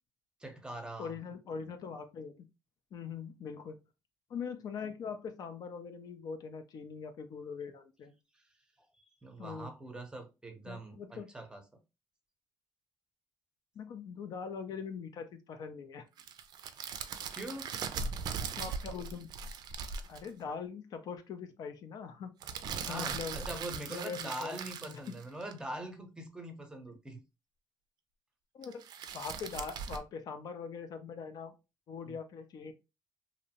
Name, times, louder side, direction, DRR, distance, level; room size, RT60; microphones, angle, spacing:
voice 1, 0.4-1.1 9.0-11.6 17.3-17.7 22.7-27.2 32.1-32.2, right 1 dB, 10° right, 0.6 m, -43 dB
voice 2, 1.0-2.5 2.9-3.8 4.3-8.1 9.4-9.7 10.6-11.3 13.8-16.0 18.6-19.3 20.1-22.3 22.8-23.4 23.9-25.0 28.5-28.8 29.1-31.5 31.9-32.7, left 6 dB, 60° left, 0.4 m, -42 dB
sound 1, 16.2-20.3 22.4-25.6 28.6-30.0, right 6 dB, 65° right, 0.4 m, -39 dB
2.6 x 2.0 x 2.7 m
cardioid pair, 105°, 8 cm